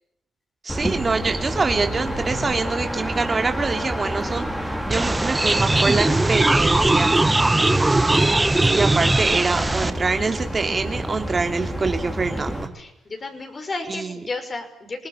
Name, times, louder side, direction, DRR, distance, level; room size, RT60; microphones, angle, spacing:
voice 1, 0.6-7.1 7.9-12.7 13.9-14.1, right 4 dB, 30° right, 5 dB, 2.8 m, -25 dB
sound 1, 0.7-12.7, equal, 5° left, 4.4 m, -29 dB
sound 2, 4.9-9.9, right 2 dB, 15° right, 1.6 m, -19 dB
voice 2, 12.7-15.1, left 3 dB, 30° left, 6 dB, 6.0 m, -32 dB
27.5 x 19.5 x 8.9 m, 0.80 s
cardioid pair, 90°, 0 cm